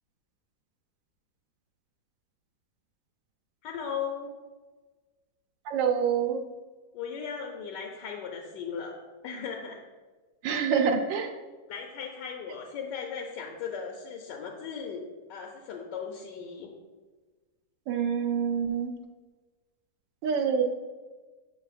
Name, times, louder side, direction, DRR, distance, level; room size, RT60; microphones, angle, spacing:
voice 1, 3.6-4.3 6.9-9.0 9.2-9.8 11.7-16.7, left 6 dB, 70° left, 1 dB, 1.2 m, -37 dB
voice 2, 5.7-6.4 10.4-11.3 17.9-18.9 20.2-20.6, right 6 dB, 80° right, 4 dB, 1.3 m, -26 dB
6.9 x 6.2 x 2.4 m, 1.3 s
omnidirectional pair, 2.1 m